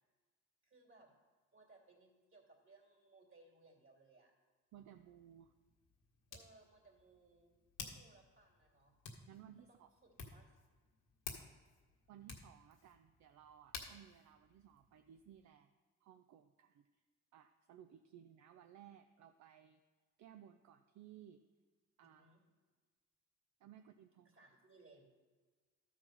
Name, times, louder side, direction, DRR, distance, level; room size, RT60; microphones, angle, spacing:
voice 1, 0.6-1.1 1.5-4.3 6.3-9.0 9.7-10.6 22.2-22.4 24.3-25.0, right 3 dB, 45° right, -1 dB, 2.7 m, -65 dB
Hands, 4.7-15.5, left 5 dB, 85° left, 1.6 m, -55 dB
voice 2, 4.7-5.5 9.3-9.9 12.1-15.7 16.0-16.9 17.3-19.8 20.2-21.4 22.0-22.4 23.6-24.4, right 10 dB, 70° right, 7 dB, 0.5 m, -59 dB
13.0 x 4.8 x 5.7 m, 1.4 s
cardioid pair, 90°, 30 cm